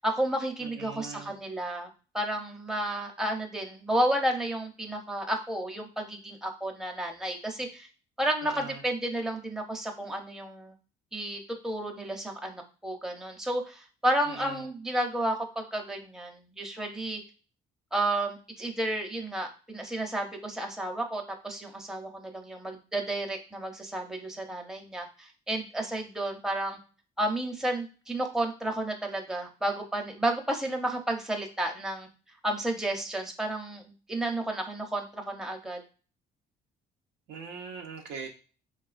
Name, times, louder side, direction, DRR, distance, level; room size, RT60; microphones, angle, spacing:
voice 1, 0.0-7.9 8.2-10.7 11.1-17.2 17.9-26.8 27.2-32.1 32.4-35.8, right 1 dB, 5° right, 1 dB, 0.7 m, -32 dB
voice 2, 0.6-1.3 8.4-8.8 14.3-14.6 37.3-38.3, right 5 dB, 80° right, 2 dB, 0.6 m, -41 dB
3.4 x 2.3 x 2.4 m, 0.37 s
supercardioid pair, 75°, 18 cm